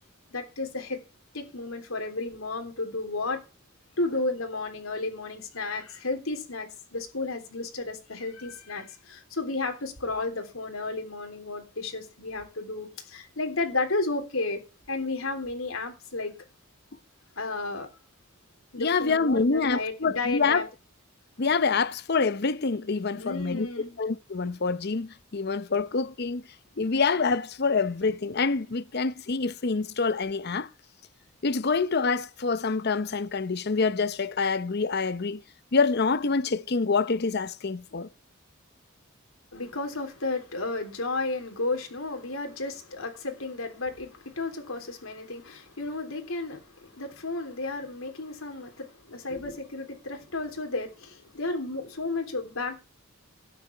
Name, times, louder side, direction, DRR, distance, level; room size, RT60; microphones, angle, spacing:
voice 1, 0.3-1.0 1.3-3.4 4.0-16.3 17.3-17.9 18.7-20.6 23.1-24.0 39.5-52.8, left 3 dB, 85° left, 3.4 m, -33 dB
voice 2, 18.8-20.7 21.4-23.7 24.0-26.4 26.8-30.7 31.4-35.4 35.7-38.1, left 4 dB, 50° left, 0.7 m, -26 dB
12.5 x 9.6 x 4.6 m
head